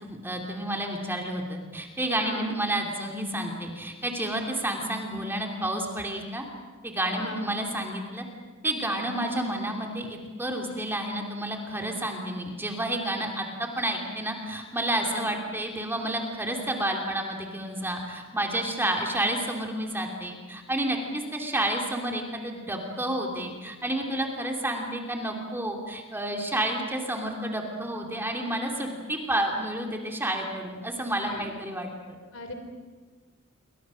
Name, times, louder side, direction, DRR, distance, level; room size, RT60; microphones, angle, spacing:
voice 1, 0.0-6.4 6.8-8.2 8.6-31.9, right 1 dB, 10° right, 1 dB, 2.9 m, -30 dB
voice 2, 2.2-2.5 7.2-7.5 15.0-15.3 31.2-31.5 32.3-32.5, left 3 dB, 80° left, 6 dB, 3.7 m, -38 dB
27.5 x 24.5 x 6.4 m, 1.4 s
head